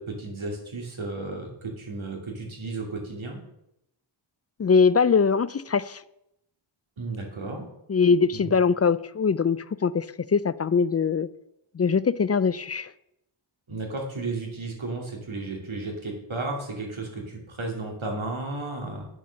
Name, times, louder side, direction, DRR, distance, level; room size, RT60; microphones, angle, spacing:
voice 1, 0.0-3.4 7.0-7.7 8.3-8.5 13.7-19.1, right 2 dB, 75° right, 2.6 m, -33 dB
voice 2, 4.6-6.0 7.9-11.3 11.7-12.9, left 5 dB, 35° left, 0.4 m, -22 dB
8.7 x 6.8 x 6.4 m
wide cardioid pair, 65°, 48 cm